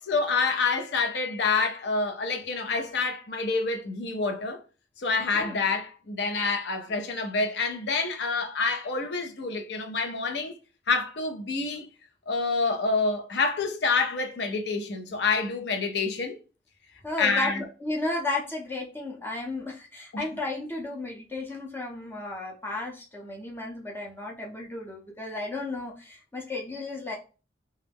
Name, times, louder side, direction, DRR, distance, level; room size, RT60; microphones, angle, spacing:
voice 1, 0.0-4.6 5.0-10.5 10.9-11.9 12.3-16.4 17.2-17.6 20.1-20.3, left 4 dB, 65° left, 0.5 m, -27 dB
voice 2, 17.0-17.5 17.8-27.2, left 2 dB, 10° left, 0.5 m, -33 dB
2.3 x 2.0 x 3.3 m
head